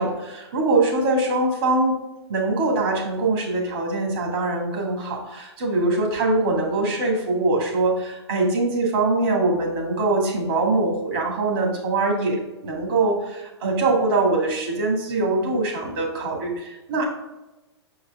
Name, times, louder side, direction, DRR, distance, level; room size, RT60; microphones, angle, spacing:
voice 1, 0.0-2.0 2.3-17.1, right 2 dB, 60° right, -1 dB, 2.3 m, -23 dB
6.5 x 4.8 x 3.7 m, 1.0 s
hypercardioid pair, 120°, 14 cm